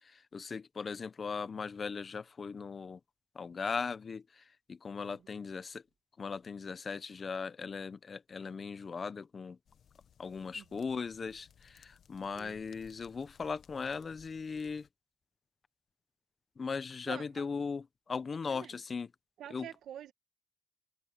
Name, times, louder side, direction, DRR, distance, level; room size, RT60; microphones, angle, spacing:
voice 1, 0.0-3.0 3.3-5.8 6.2-9.6 10.2-14.9 16.6-19.1 19.5-19.7, left 5 dB, 40° left, 0.9 m, -38 dB
sound 1, 9.7-14.9, left 8 dB, 60° left, 1.3 m, -63 dB
voice 2, 17.0-17.5 18.5-18.7 19.4-20.1, right 10 dB, 75° right, 1.7 m, -47 dB
cardioid pair, 90°, 0 cm